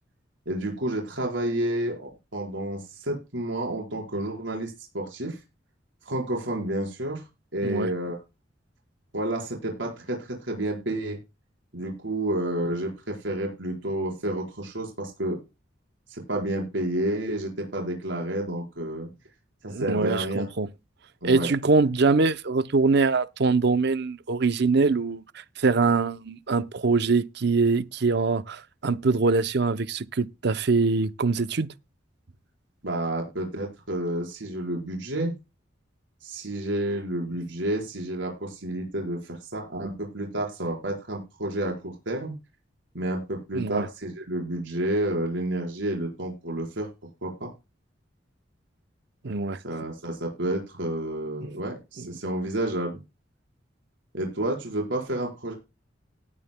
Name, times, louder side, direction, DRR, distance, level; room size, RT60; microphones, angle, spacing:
voice 1, 0.5-5.4 6.0-7.2 7.5-8.2 9.1-11.2 11.7-15.4 16.1-19.1 19.6-20.4 21.2-21.5 32.8-35.3 36.2-42.3 42.9-46.9 47.2-47.5 49.6-53.0 54.1-55.5, right 1 dB, 85° right, 4.7 m, -30 dB
voice 2, 19.7-20.7 21.2-31.7 43.5-43.9 49.2-49.6 52.0-52.1, right 4 dB, 60° right, 0.7 m, -23 dB
18.0 x 9.1 x 2.2 m
head